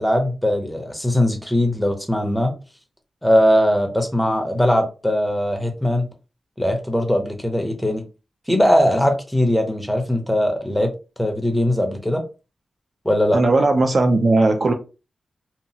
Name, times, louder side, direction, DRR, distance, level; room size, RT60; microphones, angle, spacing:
voice 1, 0.0-2.5 3.2-6.1 6.6-8.0 8.5-10.9 11.2-12.2 13.0-13.4, equal, 5° left, 0.6 m, -20 dB
voice 2, 13.3-14.7, right 2 dB, 45° right, 0.4 m, -17 dB
2.8 x 2.3 x 2.7 m
wide cardioid pair, 140°, 0 cm